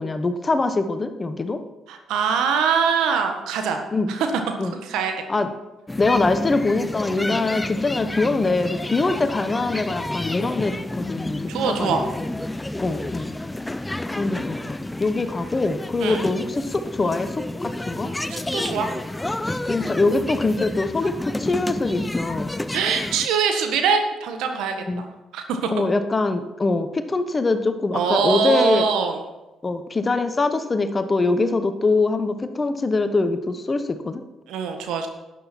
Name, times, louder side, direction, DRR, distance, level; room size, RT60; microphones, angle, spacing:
voice 1, 0.0-1.6 3.9-4.2 4.6-4.8 5.3-5.5 6.0-12.3 12.8-13.3 14.1-18.1 19.6-22.5 24.9-25.0 25.7-28.9 29.6-34.2, left 3 dB, 30° left, 10 dB, 1.1 m, -23 dB
voice 2, 1.9-3.8 4.1-4.3 4.7-5.1 11.5-12.0 16.0-16.2 18.3-18.9 22.7-25.0 25.3-25.8 27.9-29.2 34.5-35.1, right 6 dB, 70° right, 5 dB, 1.4 m, -23 dB
sound 1, 5.9-23.3, left 1 dB, 15° left, 0.6 m, -30 dB
12.0 x 9.3 x 4.5 m, 1.0 s
hypercardioid pair, 45°, 0 cm